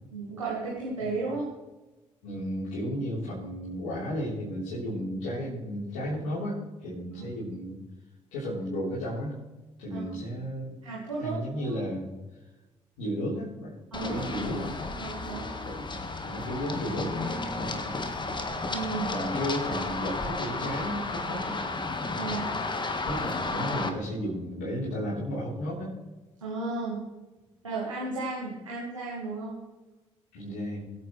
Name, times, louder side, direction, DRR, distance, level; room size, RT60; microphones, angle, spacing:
voice 1, 0.1-1.5 7.2-7.3 9.9-10.1 10.8-11.4 13.9-14.5 15.0-15.5 18.7-19.1 22.1-22.5 26.4-27.0 27.6-29.6, right 3 dB, 85° right, -5 dB, 1.9 m, -34 dB
voice 2, 2.2-7.8 8.3-9.4 9.8-10.7 11.2-12.1 13.0-14.7 15.6-18.1 19.1-21.6 23.1-25.9 30.3-30.9, equal, 70° left, -9 dB, 4.0 m, -33 dB
Run, 13.9-23.9, left 3 dB, 30° left, 1.7 m, -33 dB
22.0 x 8.8 x 3.3 m, 1.1 s
figure-of-eight pair, 45°, 16 cm